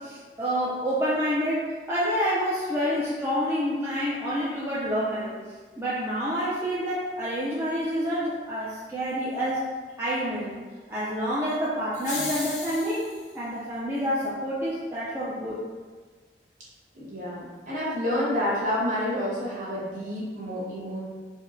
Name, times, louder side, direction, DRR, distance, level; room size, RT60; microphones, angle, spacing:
voice 1, 0.0-5.4 5.8-9.6 10.0-10.6 10.9-13.1 13.3-15.6, equal, 15° right, -9 dB, 0.4 m, -28 dB
sound 1, 11.9-13.3, left 3 dB, 45° left, 0.6 m, -35 dB
voice 2, 16.9-21.0, left 1 dB, 45° right, -8 dB, 1.0 m, -29 dB
4.2 x 2.1 x 2.6 m, 1.4 s
head